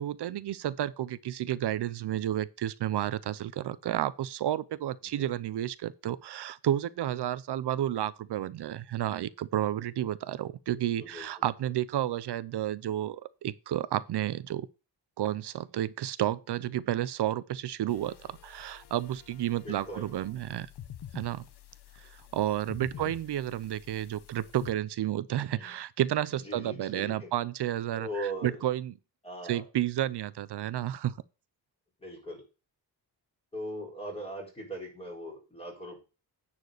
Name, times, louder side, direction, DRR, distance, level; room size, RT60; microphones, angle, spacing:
voice 1, 0.0-14.7 15.2-20.7 21.1-21.5 22.0-28.9 29.5-31.1, right 12 dB, 75° right, 0.7 m, -31 dB
sound 1, 17.9-24.7, left 10 dB, 70° left, 1.0 m, -49 dB
voice 2, 19.5-20.1 22.9-23.1 25.4-25.7 26.3-27.3 27.9-28.6 29.2-29.6 32.0-32.4 33.5-36.0, right 1 dB, 15° left, 4.5 m, -40 dB
9.6 x 4.5 x 6.4 m
wide cardioid pair, 140°, 41 cm